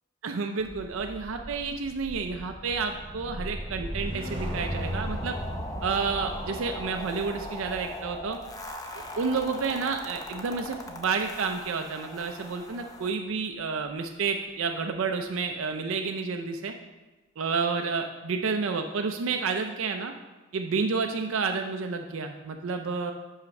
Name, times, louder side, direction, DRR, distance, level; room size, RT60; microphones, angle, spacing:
voice 1, 0.2-5.3 5.8-8.4 9.2-16.7 17.4-20.1 20.5-23.1, right 5 dB, 80° right, 4 dB, 0.5 m, -30 dB
sound 1, 0.6-11.0 11.3-11.6, equal, 25° right, 1.1 m, -38 dB
sound 2, 4.4-13.1, left 1 dB, 15° left, 0.5 m, -41 dB
5.7 x 5.7 x 5.2 m, 1.2 s
head